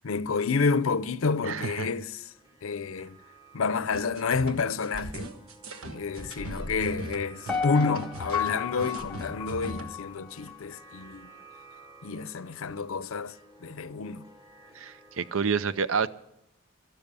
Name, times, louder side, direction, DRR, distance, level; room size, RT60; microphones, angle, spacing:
voice 1, 0.0-2.3 2.6-3.2 3.5-5.3 5.9-11.3 12.0-13.4 13.6-14.3, left 4 dB, 75° left, 0.6 m, -29 dB
sound 1, 1.0-15.4, right 2 dB, 20° right, 1.4 m, -54 dB
voice 2, 1.5-1.9 14.8-16.1, right 5 dB, 70° right, 0.6 m, -28 dB
sound 2, 3.9-9.9, right 1 dB, 90° right, 1.3 m, -39 dB
Piano, 7.5-10.6 11.0-11.1, left 7 dB, 5° left, 0.6 m, -33 dB
12.5 x 12.5 x 6.8 m
head